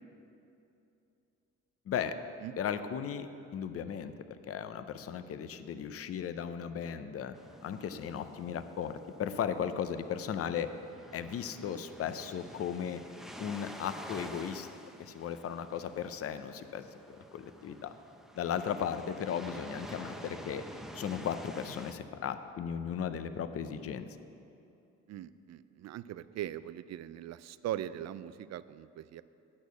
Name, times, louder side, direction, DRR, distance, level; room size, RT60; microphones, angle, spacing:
voice 1, 1.9-2.2 2.6-7.4 7.6-10.7 11.1-13.0 13.4-14.7 15.0-17.9 18.4-20.6 20.9-24.1, left 8 dB, 50° left, 10 dB, 0.6 m, -36 dB
sound 1, 7.3-21.9, equal, ahead, 0.7 m, -49 dB
voice 2, 25.1-29.2, right 12 dB, 60° right, 15 dB, 0.4 m, -40 dB
8.8 x 6.5 x 8.2 m, 2.7 s
cardioid pair, 90°, 30 cm